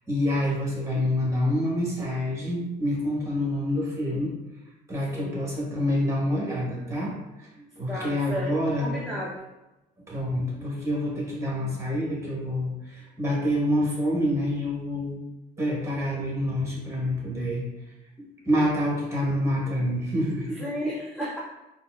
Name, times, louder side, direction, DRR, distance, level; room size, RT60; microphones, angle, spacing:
voice 1, 0.1-4.3 4.9-7.1 7.4-8.9 10.1-15.2 15.6-17.7 18.4-20.6, left 1 dB, 15° right, -4 dB, 1.1 m, -27 dB
voice 2, 7.9-8.5 8.8-9.4 20.5-21.4, equal, ahead, -6 dB, 0.5 m, -33 dB
4.2 x 2.1 x 2.3 m, 0.99 s
cardioid pair, 110°, 17 cm